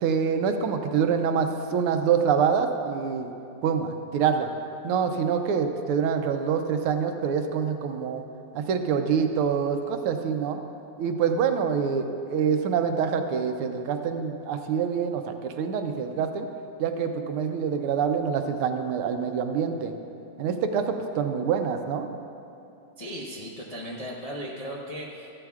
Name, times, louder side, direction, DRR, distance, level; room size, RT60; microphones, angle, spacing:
voice 1, 0.0-3.3 3.6-4.5 4.8-8.2 8.5-10.6 11.0-16.5 16.8-19.9 20.4-22.1, right 6 dB, 80° right, 6 dB, 1.6 m, -26 dB
voice 2, 23.0-25.3, equal, 70° left, -5 dB, 0.3 m, -36 dB
14.5 x 12.5 x 2.4 m, 2.7 s
omnidirectional pair, 2.4 m